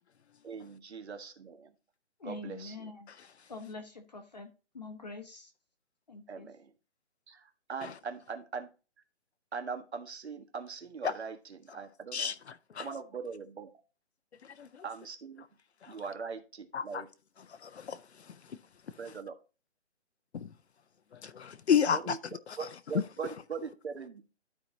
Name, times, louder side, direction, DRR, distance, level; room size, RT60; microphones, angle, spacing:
voice 1, 0.4-1.7 2.2-2.7 6.3-6.7 7.3-8.7 9.5-12.3 12.8-13.7 14.8-15.4 15.9-17.1 19.0-19.3 21.9-24.2, right 5 dB, 65° right, 1.6 m, -41 dB
voice 2, 2.2-3.1 3.5-5.5 6.1-6.5, left 3 dB, 35° left, 0.8 m, -45 dB
voice 3, 14.4-14.8 15.8-16.0 16.7-17.0 17.6-18.0 18.3-18.6 20.3-20.5 21.1-22.2, left 7 dB, 70° left, 0.6 m, -31 dB
12.5 x 4.6 x 2.8 m
hypercardioid pair, 180°, 35 cm